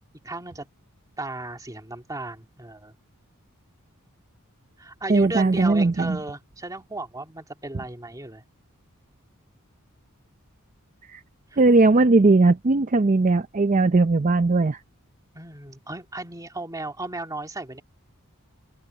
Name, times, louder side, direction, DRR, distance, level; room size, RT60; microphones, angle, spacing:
voice 1, 0.2-0.6 1.2-2.9 4.8-8.4 11.5-11.6 15.3-17.8, right 2 dB, 15° right, 2.3 m, -35 dB
voice 2, 5.1-6.2 11.1-11.2 11.6-14.8, right 3 dB, 35° right, 0.5 m, -19 dB
open air
head